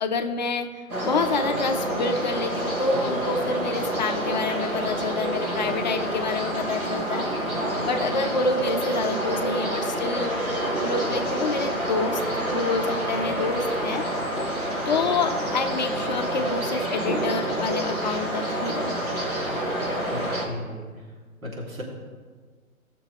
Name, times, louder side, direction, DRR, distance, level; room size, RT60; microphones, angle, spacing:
voice 1, 0.0-7.4 7.8-10.3 10.8-12.2 12.5-14.1 14.8-19.0, left 3 dB, 35° left, 8 dB, 0.6 m, -28 dB
sound 1, 0.9-20.5, right 1 dB, 85° right, 3.1 m, -28 dB
voice 2, 20.1-21.1 21.4-21.8, left 1 dB, 70° right, -3 dB, 2.9 m, -35 dB
18.0 x 6.8 x 3.2 m, 1.5 s
figure-of-eight pair, 130°, 42 cm